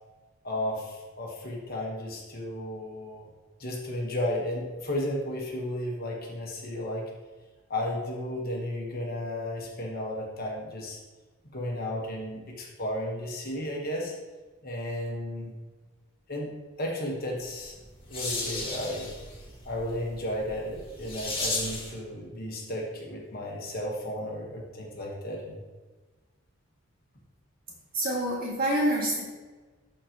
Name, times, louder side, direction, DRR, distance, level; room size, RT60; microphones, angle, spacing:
voice 1, 0.4-3.3 3.6-7.0 7.7-11.0 11.5-14.1 14.6-15.6 16.3-16.5 16.8-17.8 18.1-19.1 19.6-25.6, left 1 dB, 45° left, -2 dB, 1.3 m, -33 dB
sound 1, 17.6-22.0, left 2 dB, 25° left, 2.1 m, -35 dB
voice 2, 27.9-29.2, right 1 dB, 45° right, -3 dB, 1.9 m, -26 dB
12.0 x 4.4 x 3.0 m, 1.3 s
head